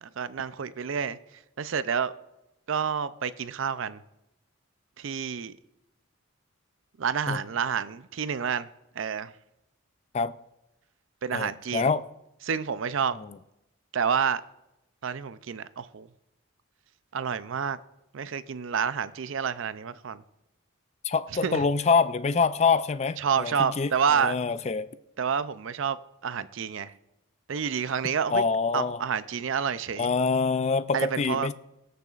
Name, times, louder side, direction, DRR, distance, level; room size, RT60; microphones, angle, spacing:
voice 1, 0.0-1.2 1.6-2.1 2.7-4.0 5.0-5.6 7.0-8.7 9.0-9.3 11.2-11.9 12.4-13.2 13.9-14.4 15.0-16.1 17.1-17.8 18.1-20.2 21.4-21.7 23.2-24.4 25.2-26.0 26.2-26.9 27.5-28.4 28.7-30.1 30.9-31.5, right 7 dB, 65° right, 0.5 m, -29 dB
voice 2, 11.3-12.0 21.0-23.9 24.2-24.9 28.3-29.0 30.0-31.5, left 4 dB, 30° left, 0.3 m, -25 dB
19.0 x 6.8 x 2.4 m
head